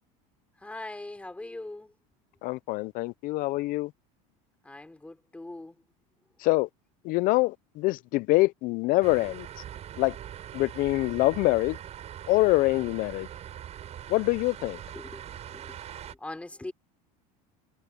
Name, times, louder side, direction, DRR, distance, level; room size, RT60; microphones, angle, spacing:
voice 1, 0.6-1.9 4.6-5.8 14.9-16.7, left 2 dB, 5° left, 4.9 m, -42 dB
voice 2, 2.4-3.9 6.4-6.7 7.0-9.5 10.0-10.1 10.5-11.8 12.3-13.3 14.1-14.8, left 20 dB, 50° left, 0.5 m, -25 dB
sound 1, 9.0-16.1, right 10 dB, 35° right, 6.4 m, -42 dB
supercardioid pair, 130°, 18 cm